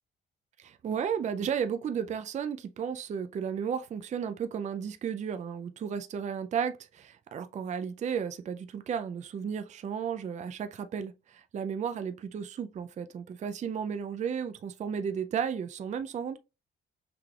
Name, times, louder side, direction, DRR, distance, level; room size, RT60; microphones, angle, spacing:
voice 1, 0.6-16.4, right 7 dB, 35° right, 0.4 m, -34 dB
5.8 x 3.2 x 2.3 m
cardioid pair, 90°, 20 cm